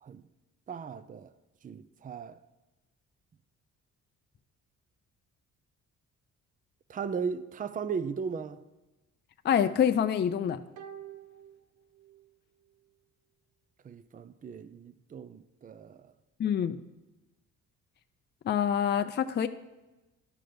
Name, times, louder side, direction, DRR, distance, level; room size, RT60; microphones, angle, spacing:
voice 1, 0.7-1.3 1.6-2.4 6.9-8.6 13.8-16.1, right 6 dB, 30° right, 0.5 m, -37 dB
voice 2, 9.4-10.6 16.4-16.8 18.5-19.5, left 8 dB, 35° left, 0.4 m, -26 dB
sound 1, 10.8-12.4 12.7-12.8, right 9 dB, 75° right, 0.8 m, -48 dB
11.5 x 6.1 x 5.0 m
cardioid pair, 90°, 30 cm